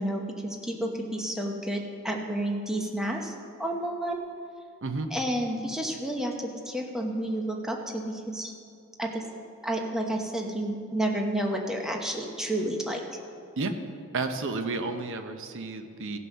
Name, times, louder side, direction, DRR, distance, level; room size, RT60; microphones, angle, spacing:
voice 1, 0.0-3.3 3.6-4.2 5.1-8.5 9.0-9.2 9.6-13.0, right 1 dB, ahead, 1 dB, 0.9 m, -30 dB
voice 2, 14.1-16.2, right 3 dB, 60° right, 6 dB, 0.8 m, -31 dB
16.5 x 5.6 x 6.3 m, 2.5 s
head